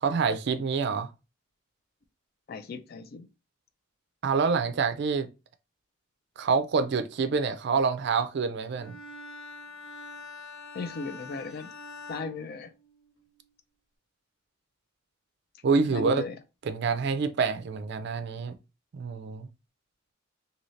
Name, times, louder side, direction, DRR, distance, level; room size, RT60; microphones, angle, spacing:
voice 1, 0.0-1.1 4.2-5.3 6.4-9.0 15.6-16.2 16.7-18.5 18.9-19.5, right 5 dB, 55° right, 0.4 m, -27 dB
voice 2, 2.5-3.3 10.7-11.7 12.1-12.7 15.9-16.4, left 4 dB, 50° left, 0.4 m, -36 dB
Bowed string instrument, 8.8-13.3, left 3 dB, 85° left, 0.9 m, -45 dB
2.8 x 2.7 x 3.1 m
head